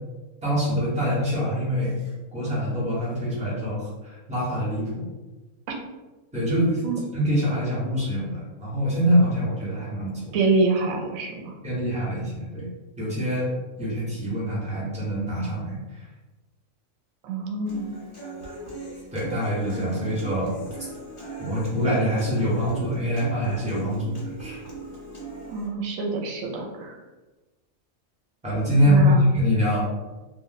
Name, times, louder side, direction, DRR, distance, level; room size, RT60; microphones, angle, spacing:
voice 1, 0.4-1.9 2.3-5.0 6.3-6.8 7.1-10.4 11.6-12.7 13.0-13.5 13.8-15.8 19.1-20.6 21.4-24.6 28.4-29.8, equal, 5° right, -7 dB, 0.9 m, -24 dB
voice 2, 10.3-11.5 17.2-17.9 25.5-27.0 28.8-29.2, right 3 dB, 85° right, 1 dB, 1.0 m, -26 dB
Human voice / Acoustic guitar, 17.7-25.7, right 3 dB, 45° left, 0.9 m, -39 dB
2.4 x 2.1 x 3.9 m, 1.2 s
omnidirectional pair, 1.4 m